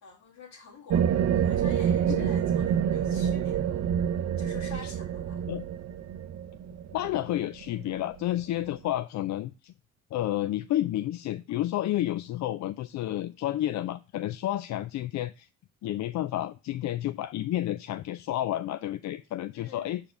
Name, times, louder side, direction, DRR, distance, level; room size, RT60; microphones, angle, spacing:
voice 1, 0.0-3.8 4.4-5.4 19.5-20.0, left 4 dB, 80° left, 2.4 m, -48 dB
sound 1, 0.9-8.2, right 8 dB, 65° right, 0.6 m, -27 dB
voice 2, 6.9-9.7 10.1-15.5 15.8-20.0, left 13 dB, 65° left, 0.4 m, -30 dB
6.8 x 5.0 x 3.5 m
cardioid pair, 90°, 30 cm